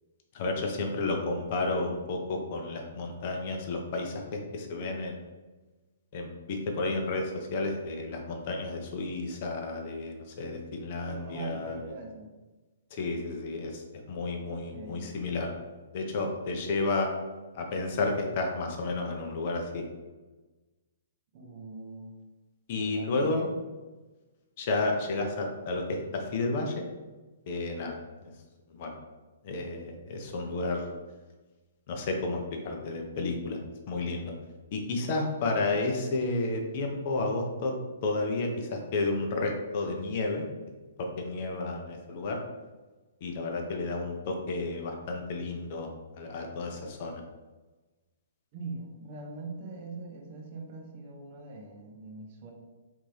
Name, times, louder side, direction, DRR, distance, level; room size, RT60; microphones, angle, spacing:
voice 1, 0.3-5.2 6.1-11.8 12.9-15.5 15.9-17.1 17.5-19.8 22.7-23.5 24.6-26.8 27.5-28.0 28.2-28.3 28.7-28.9 29.4-30.9 31.9-33.6 33.9-34.3 34.7-37.7 38.0-40.4 41.0-42.4 43.2-45.9 46.1-47.1, left 3 dB, 45° left, 2 dB, 0.6 m, -31 dB
voice 2, 11.1-12.4 14.5-15.2 21.3-22.1 22.7-23.5 48.5-52.5, right 3 dB, 40° right, 1 dB, 0.6 m, -42 dB
3.4 x 2.6 x 3.2 m, 1.2 s
figure-of-eight pair, 120°, 0 cm